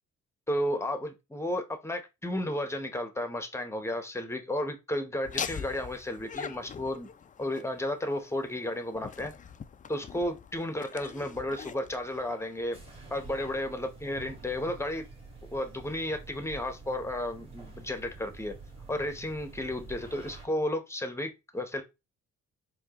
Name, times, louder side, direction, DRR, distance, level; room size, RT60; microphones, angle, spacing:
voice 1, 0.5-7.1 7.4-9.3 9.9-12.8 13.1-15.0 15.5-18.5 18.9-21.8, left 1 dB, 10° left, 0.8 m, -33 dB
Laughter, 5.2-12.9, left 7 dB, 25° left, 0.3 m, -42 dB
sound 1, 12.7-20.5, right 3 dB, 20° right, 1.5 m, -48 dB
4.5 x 2.3 x 2.9 m
cardioid pair, 90°, 30 cm